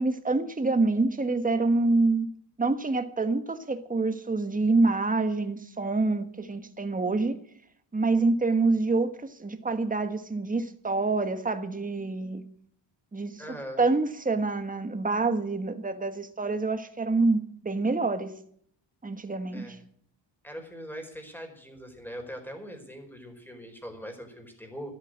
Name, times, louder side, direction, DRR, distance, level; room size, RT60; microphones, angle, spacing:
voice 1, 0.0-2.3 2.6-7.4 7.9-12.4 13.1-13.4 13.8-18.3 19.0-19.8, right 3 dB, 20° right, 8 dB, 1.4 m, -26 dB
voice 2, 13.4-13.8 19.5-19.8 20.4-25.0, equal, 5° left, 4 dB, 4.7 m, -41 dB
12.5 x 12.5 x 6.3 m, 0.63 s
wide cardioid pair, 110°, 45 cm